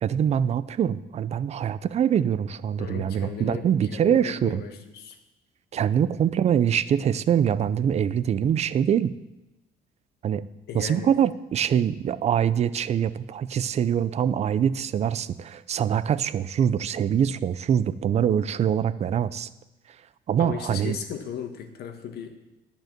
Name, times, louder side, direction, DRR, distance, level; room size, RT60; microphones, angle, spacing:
voice 1, 0.0-4.6 5.7-9.1 10.2-10.4 10.7-19.5 20.3-21.0, right 9 dB, 40° right, 16 dB, 0.5 m, -24 dB
voice 2, 2.8-5.2 10.7-11.1 20.4-22.4, left 8 dB, 70° left, 6 dB, 1.4 m, -36 dB
10.5 x 5.3 x 7.5 m, 0.97 s
cardioid pair, 110°, 17 cm